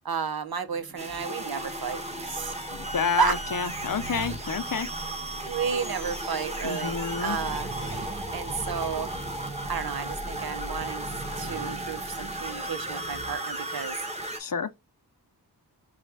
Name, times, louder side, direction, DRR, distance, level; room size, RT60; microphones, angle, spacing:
voice 1, 0.0-2.5 3.2-3.3 5.4-7.7 8.3-9.1 9.7-11.1 11.4-14.0, right 6 dB, 70° right, 0.8 m, -32 dB
sound 1, 0.7-13.3, right 2 dB, 40° right, 0.8 m, -41 dB
sound 2, 1.0-14.4, right 1 dB, 15° right, 1.3 m, -35 dB
voice 2, 2.7-4.9 6.6-7.4 14.4-14.7, left 5 dB, 55° left, 0.6 m, -29 dB
sound 3, 3.4-5.0 5.7-7.5 8.2-10.0, left 2 dB, 5° left, 1.1 m, -52 dB
4.2 x 2.3 x 4.6 m
wide cardioid pair, 55°, 39 cm